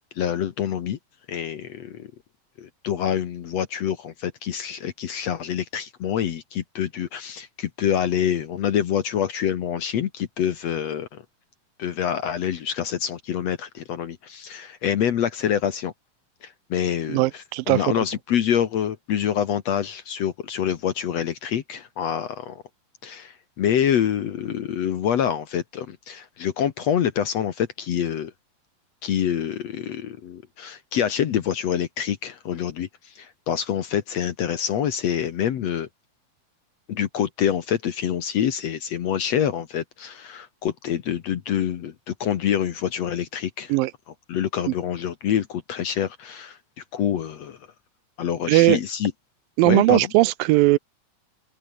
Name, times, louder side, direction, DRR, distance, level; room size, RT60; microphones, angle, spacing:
voice 1, 0.2-1.0 1.3-2.1 2.6-11.2 11.8-15.9 16.4-22.6 23.0-28.3 29.0-35.9 36.9-43.7 44.3-47.6 48.2-49.1 49.6-50.1, left 9 dB, 60° left, 2.0 m, -26 dB
voice 2, 17.1-17.9 43.7-43.9 48.5-48.8 49.6-50.8, right 19 dB, 80° right, 2.2 m, -18 dB
omnidirectional pair, 4.2 m